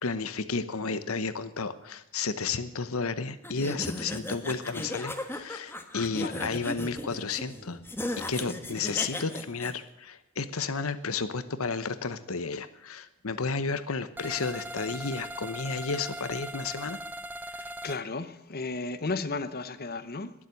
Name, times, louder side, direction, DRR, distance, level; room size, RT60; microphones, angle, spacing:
voice 1, 0.0-7.8 8.3-17.0 17.5-17.7, left 4 dB, 75° left, 1.0 m, -32 dB
sound 1, 3.4-9.7, left 1 dB, 10° left, 1.4 m, -36 dB
voice 2, 6.1-6.5 17.8-20.3, left 3 dB, 45° left, 0.9 m, -34 dB
sound 2, 14.2-18.0, right 1 dB, 10° right, 0.7 m, -40 dB
21.0 x 7.5 x 8.3 m
head